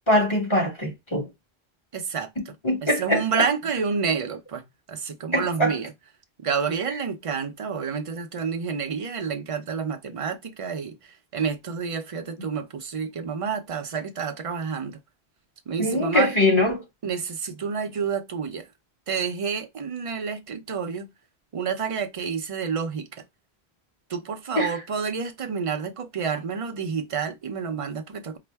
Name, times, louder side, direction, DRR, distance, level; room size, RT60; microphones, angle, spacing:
voice 1, 0.1-1.3 2.4-3.4 5.3-5.8 15.8-16.8 24.5-24.8, left 1 dB, 25° left, 1.7 m, -23 dB
voice 2, 1.9-2.3 2.8-5.9 6.4-15.0 15.7-16.3 17.0-18.7 19.1-21.1 21.5-23.2 24.1-28.4, right 6 dB, 40° right, 0.6 m, -29 dB
4.2 x 2.1 x 3.4 m
omnidirectional pair, 1.1 m